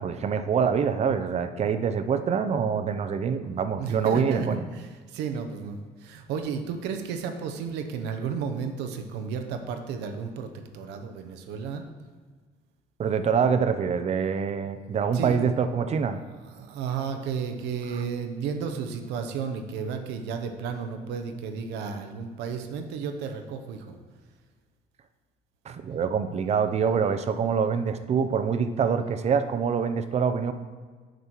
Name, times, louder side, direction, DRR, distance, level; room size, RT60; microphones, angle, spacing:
voice 1, 0.0-4.6 13.0-16.2 17.9-18.0 25.7-30.5, right 6 dB, 40° right, 10 dB, 0.6 m, -25 dB
voice 2, 3.8-11.8 15.1-15.4 16.6-24.0, right 6 dB, 90° right, 6 dB, 0.8 m, -33 dB
6.7 x 6.1 x 4.5 m, 1.5 s
cardioid pair, 110°, 17 cm